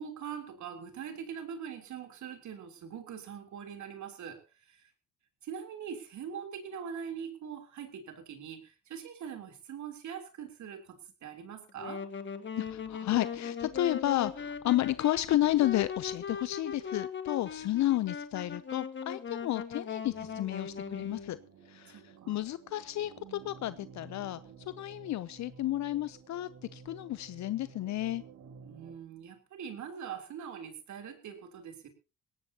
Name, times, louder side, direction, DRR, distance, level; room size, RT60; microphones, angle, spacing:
voice 1, 0.0-4.9 5.4-12.0 21.9-22.4 28.6-31.9, right 7 dB, 70° right, 3.5 m, -43 dB
Wind instrument woodwind instrument, 11.7-21.4, left 6 dB, 40° left, 1.7 m, -39 dB
voice 2, 12.6-21.4 21.7-24.4 24.7-28.2, left 14 dB, 65° left, 0.6 m, -32 dB
sound 1, 20.0-28.9, right 6 dB, 85° right, 4.0 m, -53 dB
20.0 x 17.5 x 2.9 m
cardioid pair, 90°, 30 cm